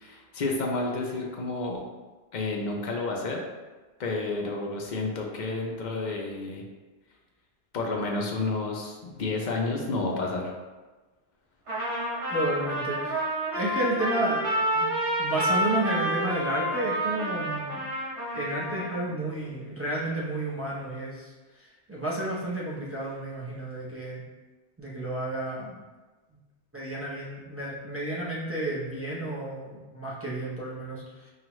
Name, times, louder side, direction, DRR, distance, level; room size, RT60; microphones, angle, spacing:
voice 1, 0.0-1.8 2.3-3.4 4.0-6.6 7.7-10.5, left 3 dB, 50° left, 0 dB, 0.6 m, -30 dB
Trumpet, 11.7-19.0, right 1 dB, 85° right, 1.5 m, -29 dB
voice 2, 12.3-13.3 13.5-14.9 15.2-17.8 18.3-24.2 24.8-25.8 26.3-26.4 26.7-31.3, right 1 dB, 15° right, -7 dB, 0.6 m, -31 dB
4.8 x 2.3 x 3.0 m, 1.3 s
omnidirectional pair, 1.2 m